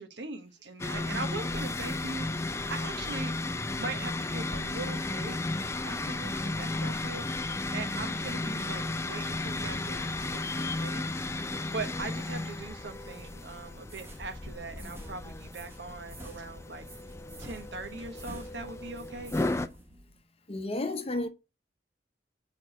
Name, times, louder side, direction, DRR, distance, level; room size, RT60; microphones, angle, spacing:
voice 1, 0.0-3.3 3.8-5.4 5.8-7.3 7.7-16.9 17.4-19.3, right 3 dB, 75° right, 1.2 m, -41 dB
sound 1, 0.8-19.7, left 2 dB, 15° left, 0.4 m, -34 dB
sound 2, 13.0-13.5 13.9-14.3 14.8-15.2 15.5-15.8 16.1-20.2, right 1 dB, 15° right, 1.2 m, -47 dB
voice 2, 20.5-21.3, left 2 dB, 35° left, 0.7 m, -32 dB
4.7 x 4.5 x 6.0 m
head